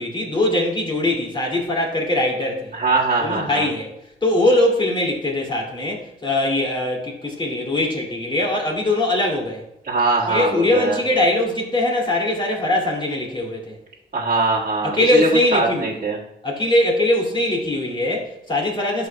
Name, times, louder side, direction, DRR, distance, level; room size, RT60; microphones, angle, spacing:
voice 1, 0.0-2.7 3.2-3.9 4.2-9.6 10.3-13.8 14.8-16.0 16.4-19.1, left 1 dB, 25° left, -2 dB, 2.4 m, -21 dB
voice 2, 2.7-3.7 9.8-11.0 14.1-16.2, right 3 dB, 45° right, -5 dB, 1.6 m, -21 dB
12.0 x 5.3 x 2.2 m, 0.81 s
cardioid pair, 90°, 20 cm